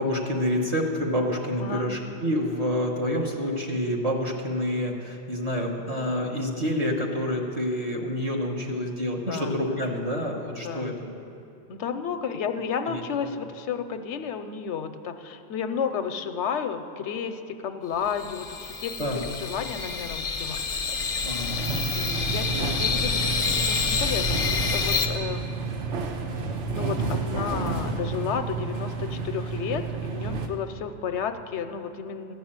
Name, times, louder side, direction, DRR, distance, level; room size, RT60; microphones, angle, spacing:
voice 1, 0.0-11.2 12.8-13.0 19.0-19.3 21.2-21.5 22.5-22.7, equal, 35° right, -1 dB, 1.1 m, -28 dB
voice 2, 9.3-9.8 10.6-10.9 11.7-19.1 19.4-20.6 21.9-25.5 26.3-32.3, left 7 dB, 85° left, 9 dB, 0.9 m, -32 dB
sound 1, 18.1-25.1, left 5 dB, 40° left, 0.7 m, -28 dB
sound 2, 21.4-30.5, right 4 dB, 85° right, 1.2 m, -31 dB
13.5 x 6.2 x 8.7 m, 2.7 s
omnidirectional pair, 1.2 m